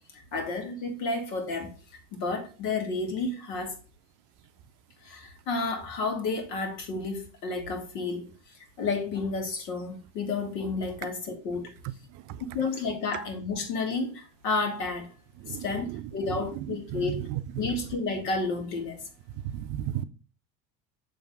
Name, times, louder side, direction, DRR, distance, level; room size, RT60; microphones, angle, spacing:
voice 1, 0.0-1.7 2.1-3.7 5.0-8.2 8.8-11.7 12.5-15.1 15.5-17.2 17.6-19.0, left 3 dB, 70° left, 2.1 m, -31 dB
voice 2, 15.4-16.0 16.7-17.4 19.4-20.0, right 12 dB, 40° right, 0.5 m, -34 dB
7.1 x 3.4 x 5.3 m
hypercardioid pair, 80°, 50 cm